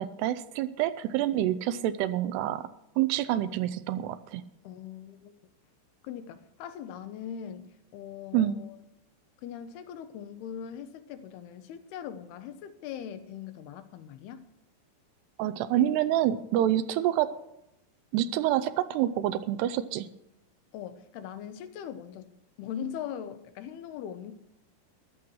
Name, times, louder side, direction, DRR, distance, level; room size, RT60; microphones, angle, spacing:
voice 1, 0.0-2.7 3.0-4.4 8.3-8.6 15.4-17.3 18.1-20.1, right 12 dB, 80° right, 11 dB, 2.7 m, -27 dB
voice 2, 4.6-5.3 6.0-8.8 9.4-14.5 20.7-22.3 22.6-24.3, left 9 dB, 80° left, 10 dB, 2.7 m, -40 dB
14.5 x 11.5 x 4.7 m, 0.83 s
omnidirectional pair, 4.8 m